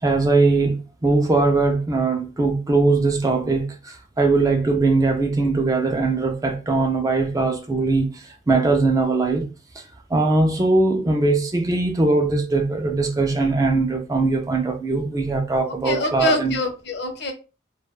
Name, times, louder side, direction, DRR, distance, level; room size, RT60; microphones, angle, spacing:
voice 1, 0.0-9.5 10.1-16.6, right 3 dB, 20° right, 0.3 m, -20 dB
voice 2, 15.6-17.3, left 2 dB, 60° left, 0.6 m, -25 dB
2.2 x 2.2 x 3.0 m
head